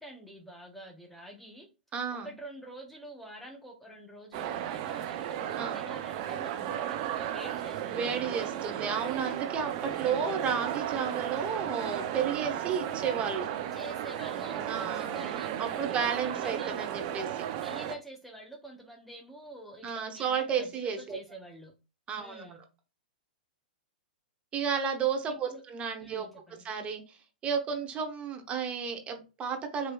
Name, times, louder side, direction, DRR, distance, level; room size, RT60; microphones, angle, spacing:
voice 1, 0.0-1.7 2.2-8.5 9.8-10.2 13.7-17.0 17.6-21.7 22.2-22.6 25.4-25.6 26.0-26.7, right 1 dB, 5° left, 2 dB, 0.7 m, -47 dB
voice 2, 1.9-2.3 5.6-5.9 7.9-13.5 14.7-17.3 19.8-21.2 22.1-22.6 24.5-26.3 26.6-27.2 27.4-29.9, right 6 dB, 25° right, 4 dB, 0.9 m, -32 dB
sound 1, 4.3-18.0, right 11 dB, 45° right, 0.5 m, -34 dB
4.4 x 3.0 x 2.3 m, 0.29 s
figure-of-eight pair, 105°, 5 cm